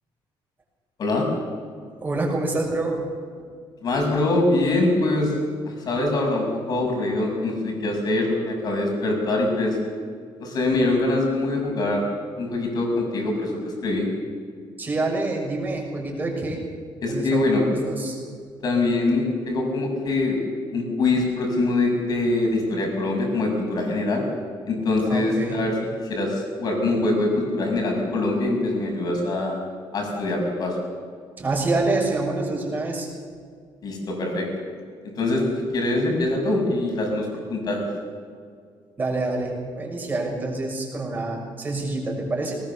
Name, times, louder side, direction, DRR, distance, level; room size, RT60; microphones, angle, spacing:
voice 1, 2.0-3.0 14.8-16.6 17.1-18.2 25.1-25.6 31.4-33.1 39.0-42.6, right 2 dB, 20° right, -1 dB, 6.2 m, -26 dB
voice 2, 3.8-5.3 5.6-9.8 10.4-14.1 17.0-17.6 18.6-20.4 20.7-24.2 24.7-25.7 26.0-29.6 29.9-30.8 33.8-34.5 35.2-35.4 35.7-37.9, left 2 dB, 50° left, 1 dB, 6.6 m, -23 dB
20.5 x 19.5 x 7.2 m, 2.1 s
cardioid pair, 145°, 9 cm